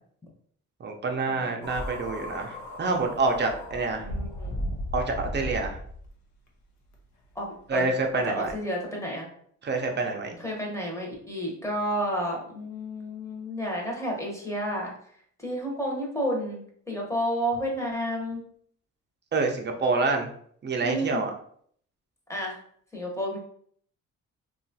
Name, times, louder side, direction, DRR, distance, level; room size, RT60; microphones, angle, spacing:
voice 1, 0.8-4.1 4.9-5.8 7.7-8.5 9.6-10.4 19.3-20.3 20.6-21.3, right 3 dB, 35° right, 3 dB, 0.6 m, -27 dB
sound 1, 1.6-6.1 6.9-7.0 8.4-8.5, left 1 dB, 70° left, 0.7 m, -35 dB
voice 2, 4.0-4.6 7.3-7.9 8.2-9.3 10.4-14.9 15.4-18.4 20.8-21.2 22.3-22.6 22.9-23.4, equal, 10° left, -1 dB, 0.9 m, -31 dB
2.8 x 2.4 x 2.7 m, 0.62 s
cardioid pair, 90°, 30 cm